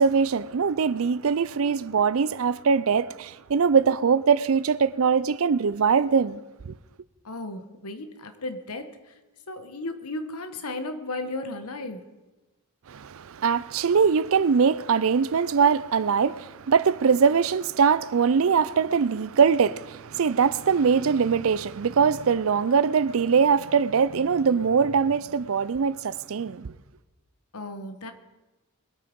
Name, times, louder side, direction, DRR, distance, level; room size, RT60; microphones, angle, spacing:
voice 1, 0.0-6.7 12.9-26.7, right 6 dB, 65° right, 0.5 m, -22 dB
voice 2, 7.2-9.1 9.5-12.1 27.5-28.1, left 2 dB, 80° left, 1.3 m, -35 dB
21.5 x 8.7 x 5.3 m
head